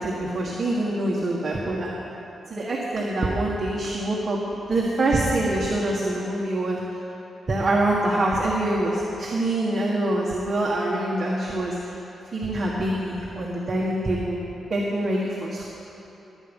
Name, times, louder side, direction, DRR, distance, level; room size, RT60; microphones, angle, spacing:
voice 1, 0.0-1.9 2.5-6.8 7.5-11.9 12.3-14.4 14.7-15.7, right 1 dB, 35° right, -3 dB, 1.6 m, -25 dB
18.5 x 9.4 x 5.4 m, 3.0 s
cardioid pair, 125°, 0 cm